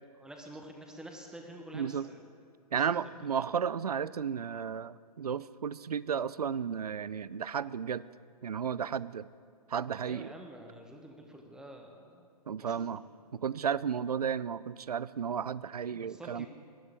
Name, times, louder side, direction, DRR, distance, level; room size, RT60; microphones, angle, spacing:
voice 1, 0.2-2.3 2.7-3.1 10.0-12.3 12.6-12.9 15.9-16.5, right 1 dB, 5° right, 2 dB, 1.1 m, -48 dB
voice 2, 1.7-2.1 2.7-8.0 8.4-9.3 9.7-10.3 12.5-13.0 13.3-16.5, right 7 dB, 75° right, 19 dB, 0.5 m, -33 dB
18.5 x 12.0 x 3.6 m, 2.2 s
figure-of-eight pair, 125°, 20 cm